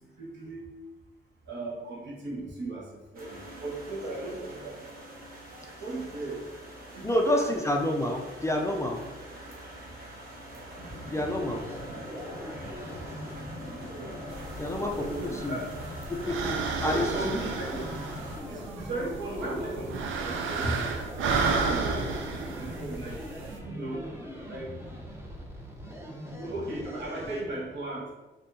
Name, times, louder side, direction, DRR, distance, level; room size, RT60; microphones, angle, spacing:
voice 1, 0.2-0.6 1.5-4.7 5.8-6.4 6.9-7.5 15.0-15.7 16.8-17.9 18.4-20.8 21.3-23.2 23.6-24.0 24.5-24.7 26.3-28.1, right 2 dB, 65° right, -3 dB, 1.2 m, -36 dB
sound 1, 3.1-18.4, equal, 45° right, 1.1 m, -44 dB
voice 2, 7.0-9.0 11.1-11.7 14.6-15.6 16.1-17.5, left 1 dB, 15° left, 1 dB, 0.4 m, -29 dB
sound 2, 10.8-27.4, equal, 10° right, 0.7 m, -42 dB
sound 3, 14.3-23.6, right 4 dB, 80° right, 0.5 m, -33 dB
4.2 x 2.7 x 2.6 m, 1.2 s
cardioid pair, 90°, 20 cm